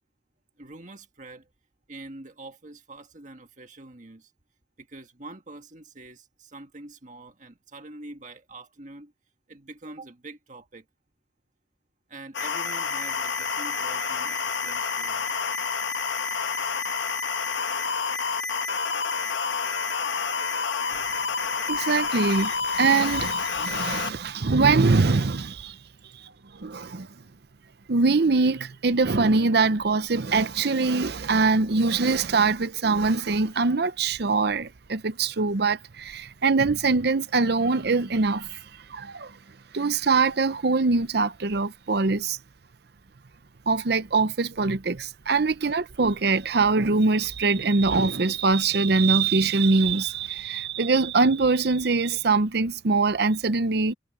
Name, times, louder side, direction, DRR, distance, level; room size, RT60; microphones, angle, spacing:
voice 1, 0.6-1.5 1.9-4.3 4.8-9.1 9.5-10.8 12.1-15.3, right 2 dB, 40° right, 1.7 m, -45 dB
sound 1, 12.3-24.1, left 5 dB, 75° left, 1.5 m, -28 dB
voice 2, 21.7-25.8 26.2-27.1 27.9-38.6 38.9-39.4 39.7-42.4 43.7-53.9, right 4 dB, 60° right, 0.7 m, -23 dB
head